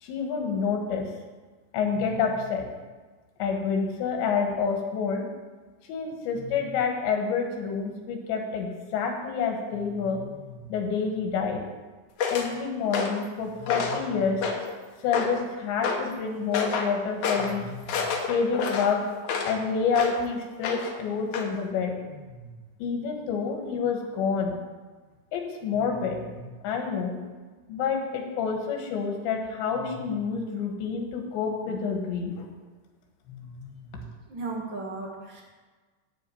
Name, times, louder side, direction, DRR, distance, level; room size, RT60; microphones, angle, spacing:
voice 1, 0.0-1.1 1.7-2.7 3.4-5.3 5.9-11.6 12.3-14.4 15.0-19.0 19.4-22.4 22.8-24.6 25.3-27.2 27.7-32.5 33.3-34.0, left 5 dB, 85° left, 2 dB, 3.9 m, -28 dB
sound 1, 12.2-12.5 12.9-13.3 13.7-14.1 14.4-14.8 15.1-15.5 15.8-16.1 16.5-16.9 17.2-17.5 17.9-19.6 19.9-20.2 20.6-21.0 21.3-21.5, left 5 dB, 65° left, 1.9 m, -29 dB
voice 2, 34.3-35.4, right 3 dB, 75° right, -1 dB, 1.0 m, -35 dB
13.0 x 5.1 x 8.6 m, 1.4 s
omnidirectional pair, 4.9 m